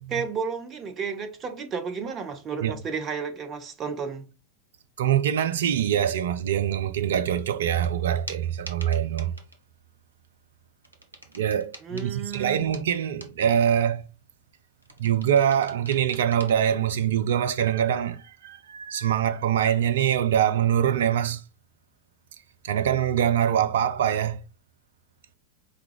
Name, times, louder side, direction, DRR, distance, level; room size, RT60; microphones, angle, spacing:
voice 1, 0.1-4.3 11.8-12.6, right 6 dB, 25° right, 0.7 m, -32 dB
voice 2, 5.0-9.3 11.3-14.1 15.0-21.4 22.6-24.4, right 9 dB, 60° right, 0.4 m, -24 dB
sound 1, 7.8-7.9 8.3-9.6 10.8-13.5 14.8-16.5, right 1 dB, 80° right, 0.9 m, -45 dB
4.8 x 2.3 x 3.2 m
figure-of-eight pair, 90°, 0 cm